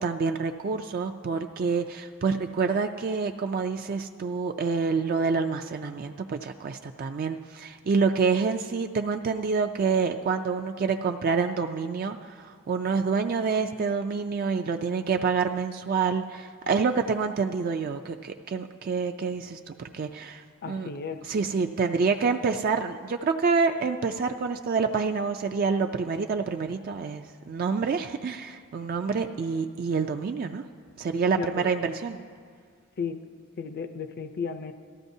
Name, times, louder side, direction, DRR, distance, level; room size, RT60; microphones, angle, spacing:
voice 1, 0.0-20.9 21.2-30.7 31.0-32.2, right 5 dB, 40° right, 5 dB, 0.3 m, -27 dB
voice 2, 20.6-21.2 31.4-31.7 33.0-33.2 33.6-34.7, left 5 dB, 45° left, 9 dB, 0.5 m, -33 dB
18.5 x 14.0 x 2.7 m, 2.1 s
head